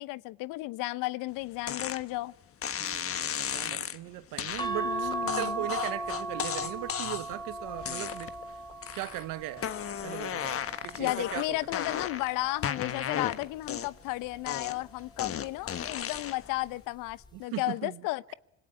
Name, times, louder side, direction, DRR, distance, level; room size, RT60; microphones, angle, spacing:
voice 1, 0.0-2.3 4.8-5.6 11.0-18.3, left 19 dB, 65° left, 0.9 m, -34 dB
sound 1, 1.7-2.0 2.6-4.0 4.4-4.7 5.3-7.4 7.8-8.4 8.8-9.2 9.6-12.3 12.6-14.1 14.5-16.5, left 8 dB, 40° left, 1.5 m, -34 dB
voice 2, 2.8-8.3 8.9-9.7 10.0-11.6 17.3-18.0, right 16 dB, 65° right, 1.2 m, -39 dB
sound 2, 4.6-11.2 11.8-13.2 14.5-14.9 15.2-15.3, right 2 dB, 10° left, 2.2 m, -38 dB
26.0 x 20.5 x 9.7 m
supercardioid pair, 80°, 35 cm